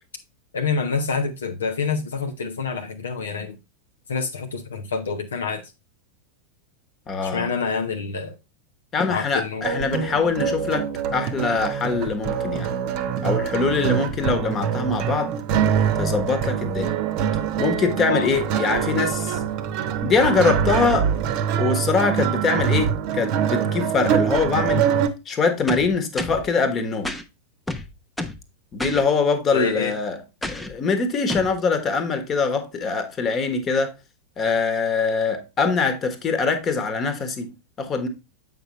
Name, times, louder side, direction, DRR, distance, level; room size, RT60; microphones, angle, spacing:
voice 1, 0.5-3.6 4.1-5.6 7.2-8.4 9.1-9.6 18.1-18.3 29.5-30.0, left 5 dB, 65° left, 0.8 m, -27 dB
voice 2, 7.1-7.5 8.9-12.7 13.2-15.3 16.0-16.9 17.6-19.4 20.0-21.1 21.6-24.9 25.2-27.1 28.7-33.9 34.4-38.1, left 4 dB, 25° left, 1.4 m, -23 dB
sound 1, 9.6-25.1, right 8 dB, 40° right, 0.9 m, -24 dB
sound 2, 25.7-26.5 27.0-27.2 27.7-28.4 28.8-29.0 30.4-30.7 31.3-31.5, left 2 dB, 5° left, 0.8 m, -30 dB
7.8 x 5.4 x 3.0 m
figure-of-eight pair, 90°, 0 cm